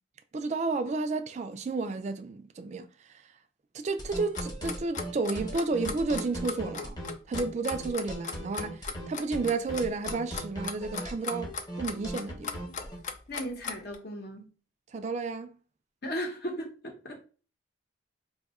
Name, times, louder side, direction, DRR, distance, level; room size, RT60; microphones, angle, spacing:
voice 1, 0.3-3.2 3.7-7.0 7.3-12.7 14.9-15.5, right 3 dB, 35° right, 0.3 m, -32 dB
sound 1, 4.0-13.0, equal, 20° left, 0.8 m, -38 dB
Clock, 4.3-14.0, left 5 dB, 40° left, 0.4 m, -37 dB
voice 2, 13.3-14.5 16.0-17.3, equal, 55° left, 0.8 m, -36 dB
2.7 x 2.3 x 4.1 m
head